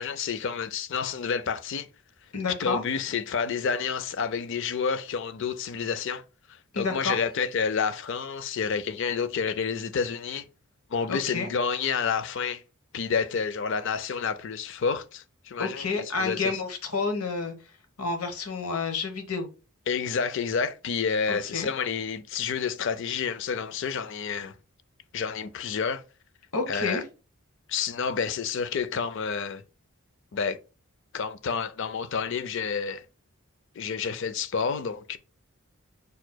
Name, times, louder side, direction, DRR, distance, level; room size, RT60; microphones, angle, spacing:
voice 1, 0.0-1.9 2.6-6.2 6.5-10.5 10.9-12.6 12.9-16.5 19.9-24.5 25.1-26.0 26.7-27.0 27.7-29.6 30.3-30.6 31.1-33.0 33.8-35.2, left 6 dB, 55° left, 0.4 m, -29 dB
voice 2, 2.3-2.8 6.7-7.2 11.1-11.5 15.6-17.5 18.0-19.5 21.3-21.7 26.5-27.0, left 4 dB, 85° left, 1.1 m, -29 dB
5.0 x 4.6 x 2.2 m
head